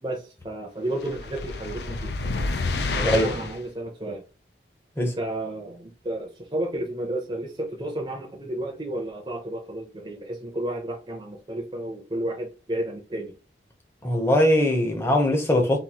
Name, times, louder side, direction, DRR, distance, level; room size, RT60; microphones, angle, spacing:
voice 1, 0.0-2.1 3.0-4.2 5.0-13.3, right 1 dB, 25° right, 0.7 m, -32 dB
sound 1, 1.0-3.6, left 3 dB, 70° left, 0.4 m, -29 dB
voice 2, 3.0-3.5 5.0-5.1 14.0-15.8, left 1 dB, 15° left, 0.8 m, -21 dB
4.0 x 2.6 x 2.9 m
head